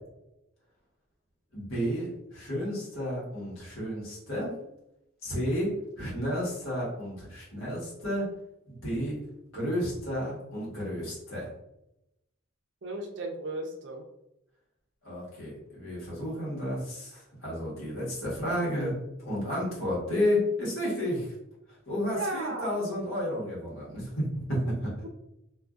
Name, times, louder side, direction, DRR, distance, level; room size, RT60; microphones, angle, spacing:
voice 1, 1.5-4.5 5.2-8.2 8.7-9.2 9.5-11.5 15.0-21.3 21.9-25.1, equal, 75° left, -6 dB, 1.4 m, -32 dB
voice 2, 12.8-14.0 22.1-22.7 25.0-25.1, right 2 dB, 55° right, 3 dB, 0.5 m, -35 dB
2.6 x 2.5 x 2.4 m, 0.85 s
head